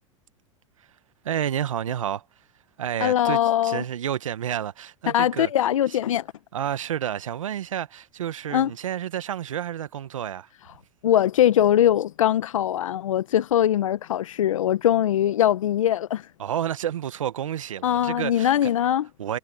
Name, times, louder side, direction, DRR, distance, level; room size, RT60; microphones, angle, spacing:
voice 1, 1.2-2.2 2.8-5.5 5.9-6.0 6.5-10.5 16.4-18.5 19.2-19.4, right 10 dB, 90° right, 1.1 m, -30 dB
voice 2, 3.0-3.8 5.1-6.3 8.5-8.7 11.0-16.3 17.8-19.1, left 11 dB, 85° left, 0.7 m, -21 dB
hypercardioid pair, 100°, 16 cm